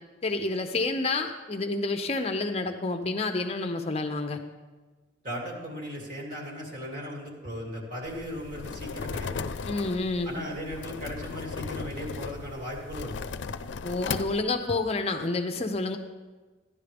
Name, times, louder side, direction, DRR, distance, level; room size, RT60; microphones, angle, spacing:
voice 1, 0.2-4.4 9.7-10.4 13.8-16.0, left 3 dB, 35° left, 6 dB, 0.6 m, -29 dB
voice 2, 5.2-9.5 10.2-13.2, equal, 45° right, -2 dB, 2.6 m, -37 dB
sound 1, 8.0-14.4, left 5 dB, 80° left, 0.4 m, -36 dB
14.5 x 10.5 x 3.4 m, 1.3 s
head